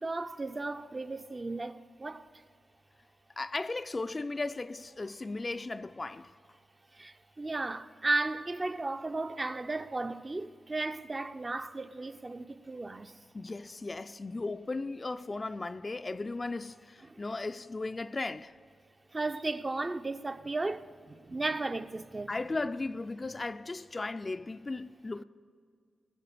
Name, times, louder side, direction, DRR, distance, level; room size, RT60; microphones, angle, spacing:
voice 1, 0.0-2.3 6.9-13.1 17.1-17.2 19.1-22.3, right 2 dB, 30° right, 0.5 m, -35 dB
voice 2, 3.4-6.3 13.3-18.5 22.3-25.2, left 3 dB, 35° left, 0.4 m, -36 dB
19.5 x 7.6 x 6.8 m
cardioid pair, 70°, 0 cm